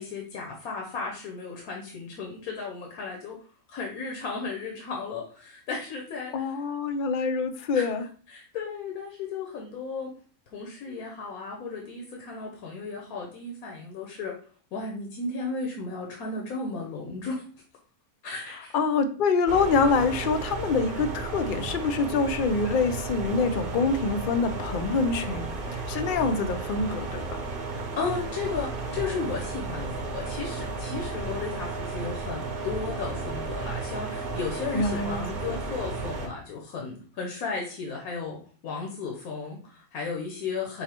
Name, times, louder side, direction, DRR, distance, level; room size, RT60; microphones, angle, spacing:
voice 1, 0.0-3.4 3.7-6.6 7.7-7.9 8.3-10.1 10.5-14.4 14.7-17.4 18.2-18.7 25.9-26.1 27.7-40.8, left 4 dB, 85° left, 0 dB, 1.4 m, -35 dB
voice 2, 6.3-8.0 18.7-27.4 34.7-35.2 35.5-35.6, left 4 dB, 60° left, 9 dB, 0.5 m, -26 dB
sound 1, 19.5-36.3, right 3 dB, 45° right, 0.9 m, -33 dB
5.8 x 2.0 x 4.4 m, 0.41 s
omnidirectional pair, 1.5 m